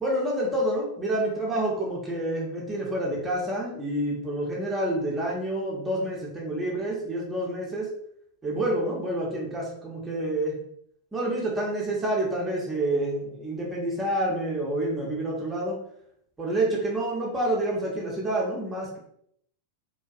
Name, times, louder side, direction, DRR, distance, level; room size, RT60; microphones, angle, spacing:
voice 1, 0.0-7.9 8.4-10.6 11.1-15.8 16.4-19.0, right 1 dB, 15° right, -4 dB, 0.7 m, -28 dB
2.5 x 2.2 x 2.4 m, 0.69 s
figure-of-eight pair, 90°, 0 cm